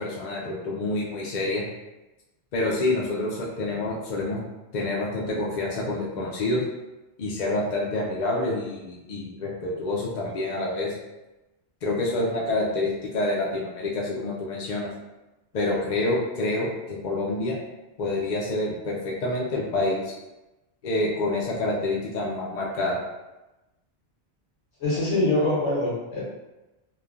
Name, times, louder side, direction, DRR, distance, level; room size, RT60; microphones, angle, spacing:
voice 1, 0.0-1.6 2.5-4.4 4.7-6.6 7.2-10.9 11.8-14.9 15.5-17.6 18.0-20.1 20.8-23.0, left 2 dB, 55° left, -3 dB, 0.5 m, -27 dB
voice 2, 24.8-26.2, left 2 dB, 85° left, -8 dB, 1.3 m, -24 dB
3.1 x 2.1 x 2.4 m, 1.0 s
omnidirectional pair, 1.2 m